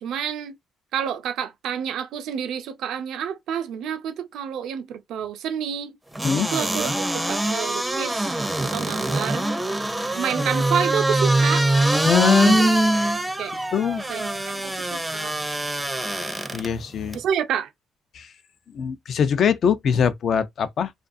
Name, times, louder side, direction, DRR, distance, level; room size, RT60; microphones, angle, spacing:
voice 1, 0.0-0.6 0.9-6.0 6.3-6.9 7.3-9.5 10.1-11.7 12.6-12.7 13.4-13.5 14.1-15.3 17.1-17.7, right 8 dB, 80° right, 0.4 m, -29 dB
sound 1, 6.2-16.7 17.1-17.2, right 1 dB, 5° right, 0.5 m, -23 dB
voice 2, 12.0-12.6 13.7-14.0 16.5-17.2 18.1-18.3 18.7-20.9, left 7 dB, 60° left, 0.4 m, -22 dB
2.4 x 2.3 x 2.5 m
cardioid pair, 90°, 0 cm